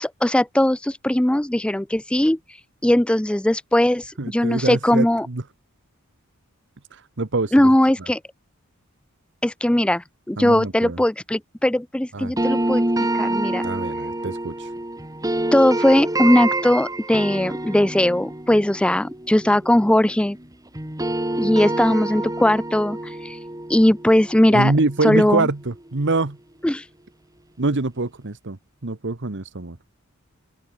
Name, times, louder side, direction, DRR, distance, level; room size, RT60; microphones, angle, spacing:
voice 1, 0.0-2.4 2.8-5.3 7.5-8.2 9.4-12.8 13.1-13.6 15.5-20.4 21.4-23.0 23.2-23.4 23.7-24.7 25.0-25.5 26.6-26.8, left 1 dB, 5° left, 0.4 m, -19 dB
voice 2, 4.2-5.4 6.9-7.7 10.4-11.0 12.1-12.3 13.6-14.7 24.5-26.4 27.6-29.8, right 3 dB, 55° right, 1.2 m, -25 dB
sound 1, 12.4-20.4 20.7-25.7, right 1 dB, 15° right, 2.6 m, -27 dB
head